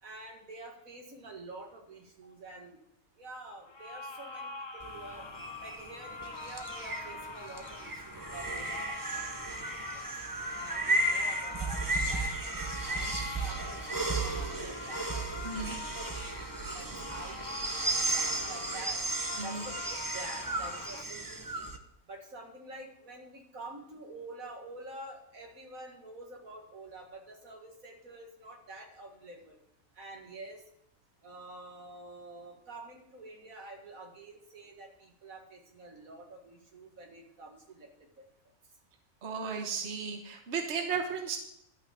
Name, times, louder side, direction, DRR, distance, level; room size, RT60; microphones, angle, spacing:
voice 1, 0.0-2.8 3.2-5.3 5.6-9.2 9.6-10.1 10.6-16.4 16.7-19.0 19.4-21.7 22.1-29.6 29.9-30.6 31.2-38.2, right 2 dB, 80° right, 1 dB, 2.4 m, -48 dB
sound 1, 3.7-21.0, left 3 dB, 30° left, 0.5 m, -44 dB
sound 2, 4.8-21.8, right 2 dB, 20° right, 0.6 m, -34 dB
voice 2, 15.4-15.8 19.4-19.6 39.2-41.4, right 5 dB, 55° right, 4 dB, 1.4 m, -34 dB
12.0 x 5.6 x 8.5 m, 0.77 s
omnidirectional pair, 1.4 m